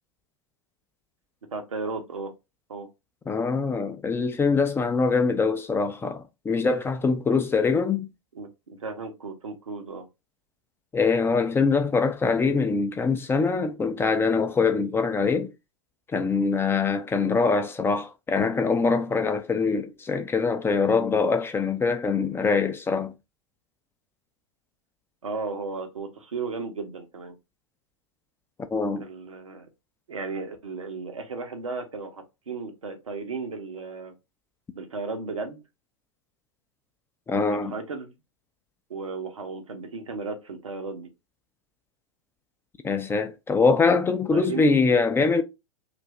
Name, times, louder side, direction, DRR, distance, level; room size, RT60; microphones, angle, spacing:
voice 1, 1.5-2.3 2.7-2.9 8.3-10.1 25.2-27.3 29.0-29.7 30.1-34.1 34.7-35.6 37.5-38.1 38.9-41.1 43.9-44.0 44.3-44.6, right 4 dB, 85° right, 0.8 m, -35 dB
voice 2, 3.3-8.1 10.9-15.5 16.1-23.1 28.7-29.1 37.3-37.7 42.8-45.4, left 4 dB, 15° left, 0.4 m, -23 dB
2.6 x 2.5 x 3.1 m
hypercardioid pair, 95°, 16 cm